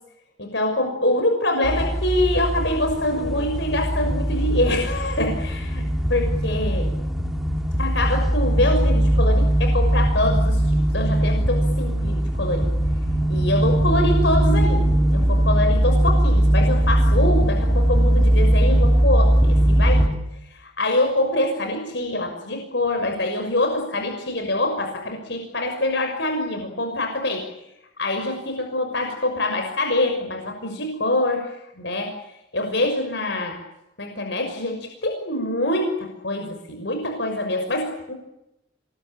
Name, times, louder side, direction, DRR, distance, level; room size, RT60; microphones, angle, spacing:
voice 1, 0.4-5.8 6.1-6.9 7.8-12.7 13.3-20.1 20.5-27.5 28.0-32.1 32.5-33.6 34.0-38.1, left 1 dB, 60° left, 3 dB, 6.1 m, -25 dB
sound 1, 1.6-20.1, right 1 dB, ahead, 2.4 m, -20 dB
28.5 x 22.0 x 9.1 m, 0.86 s
head